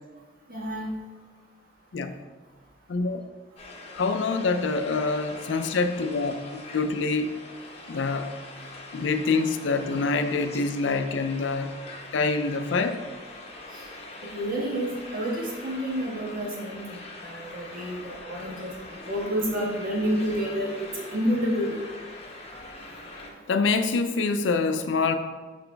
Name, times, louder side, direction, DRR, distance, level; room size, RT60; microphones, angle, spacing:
voice 1, 0.5-0.9 14.3-18.7 19.1-21.8, equal, 50° right, -3 dB, 1.5 m, -29 dB
sound 1, 3.5-23.3, left 2 dB, 35° left, 0.9 m, -43 dB
voice 2, 3.9-7.3 7.9-8.3 8.9-11.7 12.1-13.0 17.8-18.0 23.5-25.2, left 4 dB, 80° left, 8 dB, 0.4 m, -26 dB
5.9 x 4.8 x 3.4 m, 1.4 s
head